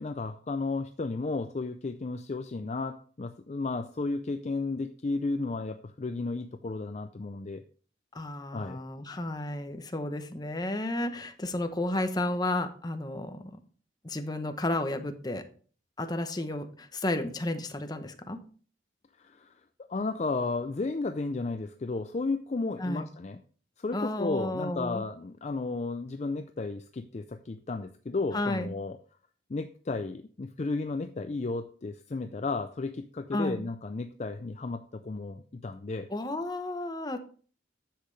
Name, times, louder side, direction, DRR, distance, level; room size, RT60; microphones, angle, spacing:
voice 1, 0.0-7.6 8.5-8.8 19.2-19.5 19.9-23.4 23.8-29.0 29.5-36.1, left 3 dB, 35° left, 8 dB, 0.4 m, -33 dB
voice 2, 8.1-13.6 14.0-15.4 16.0-18.4 22.8-23.0 23.9-25.0 28.3-28.7 33.3-33.6 36.1-37.2, left 1 dB, 20° left, 7 dB, 0.8 m, -32 dB
10.0 x 7.6 x 3.2 m, 0.42 s
head